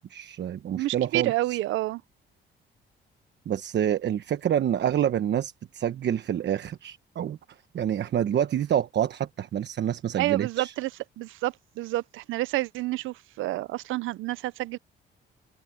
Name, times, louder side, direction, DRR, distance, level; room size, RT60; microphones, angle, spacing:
voice 1, 0.0-1.6 3.5-7.4 7.7-10.7, right 10 dB, 60° right, 1.2 m, -27 dB
voice 2, 0.8-2.0 10.2-10.9 11.2-14.8, right 17 dB, 90° right, 0.6 m, -29 dB
open air
cardioid pair, 90°, 20 cm